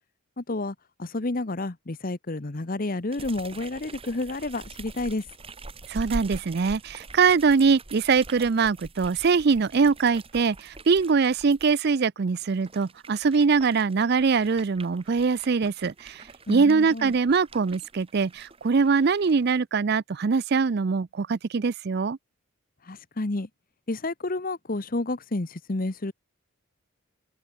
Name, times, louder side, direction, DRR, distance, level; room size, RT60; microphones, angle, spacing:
voice 1, 0.4-5.2 16.5-17.1 22.8-23.5 23.9-26.1, left 2 dB, 40° left, 1.0 m, -30 dB
sound 1, 3.1-11.7 12.3-19.6, right 2 dB, 25° right, 1.9 m, -44 dB
voice 2, 5.9-22.2, right 5 dB, 50° right, 0.4 m, -23 dB
head